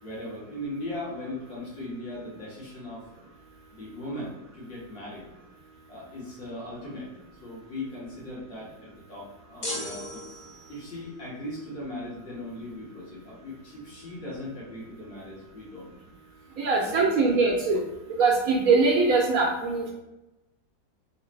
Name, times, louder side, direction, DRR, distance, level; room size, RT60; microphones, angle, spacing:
voice 1, 0.0-3.0 3.7-5.3 5.9-7.1 7.4-10.3 10.7-15.9 16.8-17.3, left 1 dB, 90° left, -7 dB, 2.3 m, -38 dB
sound 1, 9.6-11.0, left 1 dB, 65° left, 0.4 m, -36 dB
voice 2, 16.6-17.8 18.2-19.9, right 4 dB, 70° right, 0 dB, 0.9 m, -22 dB
3.9 x 3.3 x 3.1 m, 0.93 s
omnidirectional pair, 1.9 m